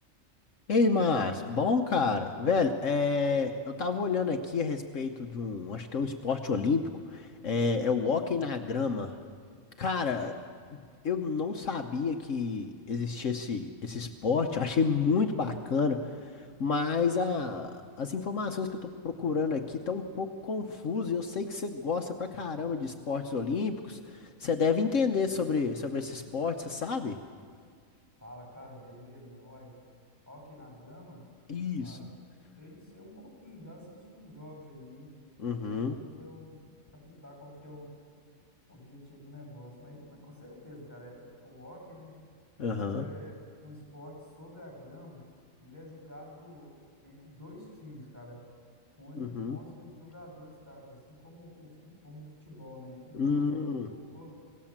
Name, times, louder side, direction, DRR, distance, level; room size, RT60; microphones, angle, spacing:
voice 1, 0.7-6.8 7.1-9.2 9.8-10.3 11.0-27.2 31.5-32.0 35.4-36.0 42.6-43.0 49.2-49.6 53.1-53.9, left 4 dB, 65° left, 4 dB, 1.3 m, -29 dB
voice 2, 28.2-29.7 30.3-31.2 31.8-32.1 32.6-35.1 35.7-37.9 38.7-42.2 42.7-45.3 45.6-46.8 47.0-48.4 49.0-54.3, left 1 dB, 10° right, -1 dB, 7.2 m, -49 dB
26.5 x 17.5 x 7.4 m, 2.1 s
omnidirectional pair, 1.4 m